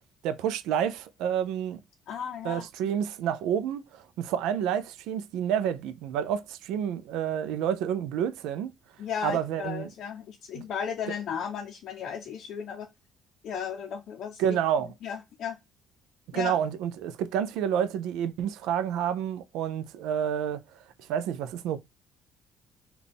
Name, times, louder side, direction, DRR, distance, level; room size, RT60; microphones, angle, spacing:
voice 1, 0.2-1.8 2.4-8.7 9.2-9.9 10.5-10.6 14.4-14.9 16.3-21.8, right 9 dB, 90° right, 0.3 m, -29 dB
voice 2, 2.1-2.7 9.0-12.9 13.4-14.6 15.0-15.6 16.3-16.5, left 7 dB, 65° left, 0.5 m, -35 dB
3.4 x 2.2 x 3.8 m
cardioid pair, 110°, 0 cm